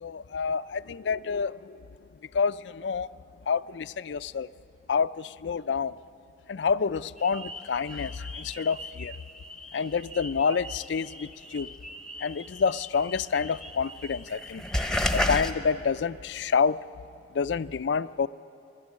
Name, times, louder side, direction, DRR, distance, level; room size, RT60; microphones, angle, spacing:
voice 1, 0.0-1.8 2.3-3.1 3.5-4.5 4.9-5.9 6.5-9.1 9.7-11.7 12.2-14.6 15.1-16.8 17.3-18.3, left 5 dB, 80° left, 16 dB, 0.4 m, -28 dB
sound 1, 7.2-15.5, left 1 dB, 5° left, 0.8 m, -34 dB
25.0 x 12.0 x 8.8 m, 2.5 s
head